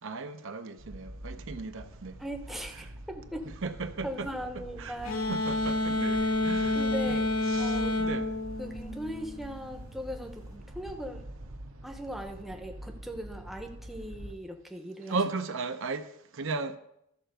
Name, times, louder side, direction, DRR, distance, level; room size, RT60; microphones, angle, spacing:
voice 1, 0.0-2.2 2.7-2.9 3.6-4.3 4.5-5.0 5.3-7.2 7.5-8.3 15.0-16.8, right 4 dB, 60° right, 0.6 m, -36 dB
sound 1, 0.8-14.3, right 1 dB, 75° right, 1.1 m, -45 dB
voice 2, 2.2-3.5 4.0-5.4 6.7-7.2 7.6-8.0 8.6-11.2 11.8-15.2, equal, ahead, 0.8 m, -39 dB
sound 2, 5.0-9.5, left 2 dB, 65° left, 1.0 m, -29 dB
13.5 x 4.5 x 6.6 m
head